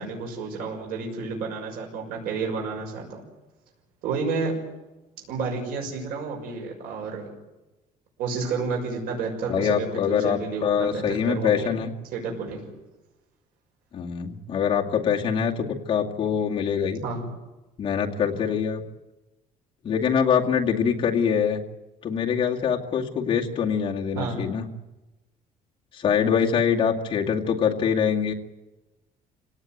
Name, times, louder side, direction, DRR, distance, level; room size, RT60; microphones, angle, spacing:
voice 1, 0.0-3.2 4.0-4.5 5.3-7.3 8.2-11.7 12.1-12.6 17.0-17.3 24.1-24.4, right 4 dB, 85° right, 1 dB, 6.3 m, -30 dB
voice 2, 9.5-11.9 13.9-17.0 17.8-18.8 19.8-21.6 22.0-24.7 25.9-28.3, left 7 dB, 35° left, -1 dB, 2.2 m, -24 dB
26.5 x 18.0 x 9.3 m, 1.1 s
cardioid pair, 165°, 15 cm